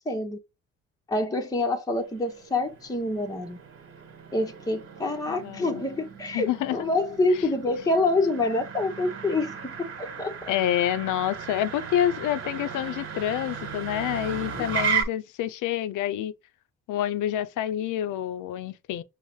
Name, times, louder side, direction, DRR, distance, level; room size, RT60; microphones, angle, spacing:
voice 1, 0.1-0.4 1.1-3.6 4.3-10.5 14.5-14.7, left 2 dB, 10° left, 0.7 m, -27 dB
Motor vehicle (road), 2.0-15.0, right 6 dB, 50° right, 1.4 m, -35 dB
voice 2, 5.3-5.8 6.3-6.8 10.5-16.3 16.9-19.0, left 11 dB, 85° left, 0.5 m, -28 dB
5.5 x 2.0 x 3.0 m
cardioid pair, 90°, 30 cm